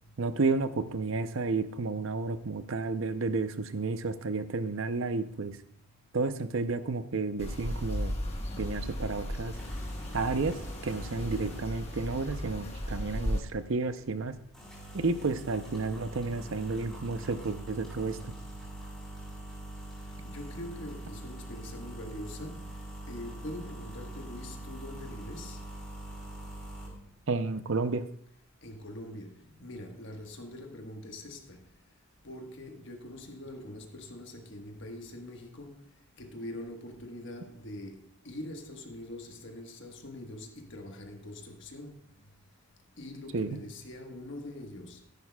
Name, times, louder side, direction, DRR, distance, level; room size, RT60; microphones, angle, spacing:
voice 1, 0.2-5.6 6.1-8.1 8.6-9.5 10.1-10.6 10.8-14.4 14.9-18.2 27.3-28.0 43.3-43.6, right 3 dB, 60° right, 0.6 m, -31 dB
sound 1, 7.4-13.4, equal, 25° left, 1.3 m, -35 dB
sound 2, 9.5-27.2, right 1 dB, ahead, 3.9 m, -45 dB
voice 2, 20.0-25.8 28.6-31.7 32.2-42.3 43.0-45.0, left 1 dB, 55° left, 1.4 m, -44 dB
13.5 x 10.5 x 2.3 m
head